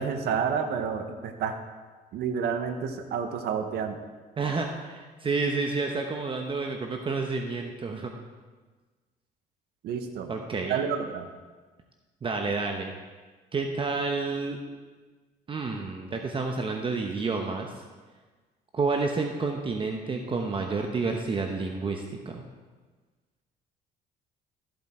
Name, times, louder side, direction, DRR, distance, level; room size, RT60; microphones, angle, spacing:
voice 1, 0.0-1.6 2.1-4.0 9.8-10.3 10.7-11.3, right 6 dB, 70° right, 7 dB, 1.0 m, -29 dB
voice 2, 4.4-8.1 10.3-10.8 12.2-12.9 13.5-14.6 15.5-17.7 18.7-22.4, right 4 dB, 30° right, 3 dB, 1.0 m, -30 dB
14.0 x 7.8 x 4.4 m, 1.4 s
cardioid pair, 110°, 17 cm